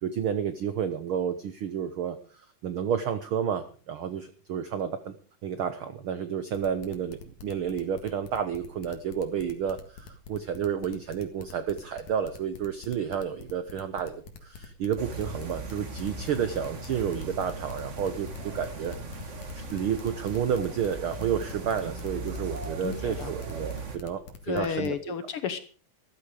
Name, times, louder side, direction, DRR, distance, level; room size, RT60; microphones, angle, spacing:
voice 1, 0.0-5.2 5.4-19.3 19.7-25.1, right 8 dB, 80° right, 11 dB, 1.2 m, -31 dB
sound 1, 6.5-24.9, left 6 dB, 85° left, 3.4 m, -45 dB
sound 2, 15.0-24.0, right 3 dB, 35° right, 1.1 m, -38 dB
voice 2, 22.8-23.3 24.5-25.6, left 8 dB, 65° left, 11 dB, 1.4 m, -32 dB
14.0 x 14.0 x 4.9 m, 0.39 s
omnidirectional pair, 3.6 m